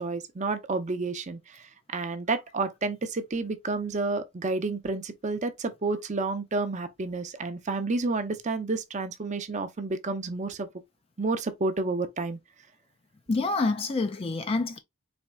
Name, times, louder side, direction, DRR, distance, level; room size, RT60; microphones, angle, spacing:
voice 1, 0.0-10.7 11.2-12.4, right 3 dB, 35° right, 0.6 m, -30 dB
voice 2, 13.3-14.8, left 3 dB, 30° left, 0.4 m, -27 dB
4.2 x 3.4 x 2.3 m
head